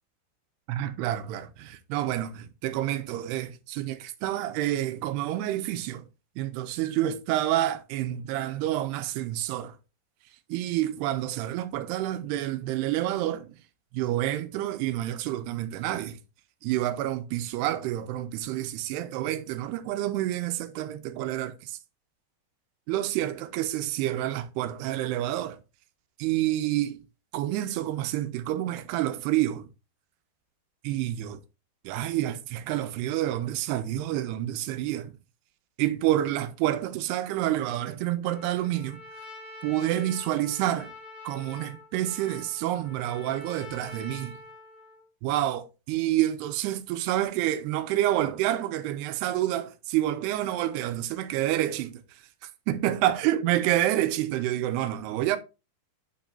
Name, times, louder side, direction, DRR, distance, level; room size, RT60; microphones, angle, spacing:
voice 1, 0.7-6.0 6.4-9.8 10.5-13.5 13.9-16.2 16.6-21.8 22.9-25.6 26.2-27.0 27.3-29.7 30.8-31.4 31.8-35.1 35.8-39.0 39.6-40.9 41.2-44.3 45.2-51.9 52.7-55.4, right 13 dB, 85° right, 2.7 m, -28 dB
Trumpet, 38.2-45.0, left 2 dB, 20° left, 4.7 m, -45 dB
10.5 x 5.4 x 2.6 m
omnidirectional pair, 4.7 m